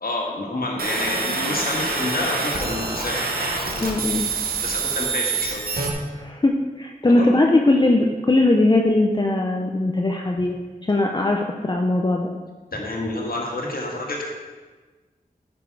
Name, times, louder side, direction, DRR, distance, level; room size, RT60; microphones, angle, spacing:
voice 1, 0.0-3.2 3.7-4.2 4.6-5.6 7.0-7.4 12.7-14.2, left 2 dB, 75° left, -2 dB, 1.7 m, -28 dB
sound 1, 0.8-5.9, right 4 dB, 80° right, 1.2 m, -26 dB
voice 2, 3.8-4.2 6.1-10.5 10.8-12.3, left 2 dB, 30° left, 1 dB, 0.6 m, -20 dB
9.6 x 6.2 x 4.7 m, 1.3 s
wide cardioid pair, 80°, 15 cm